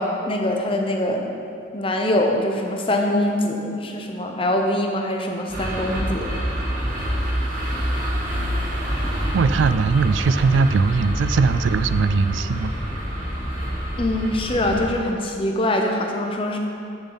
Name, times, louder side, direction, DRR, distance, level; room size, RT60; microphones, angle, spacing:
voice 1, 0.0-1.3 1.7-6.3 14.0-16.6, left 1 dB, 30° left, 2 dB, 0.8 m, -23 dB
sound 1, 5.5-14.9, equal, 45° right, 2.2 m, -26 dB
voice 2, 9.3-12.7, right 5 dB, 80° right, 13 dB, 0.3 m, -20 dB
11.0 x 7.1 x 4.0 m, 2.6 s
head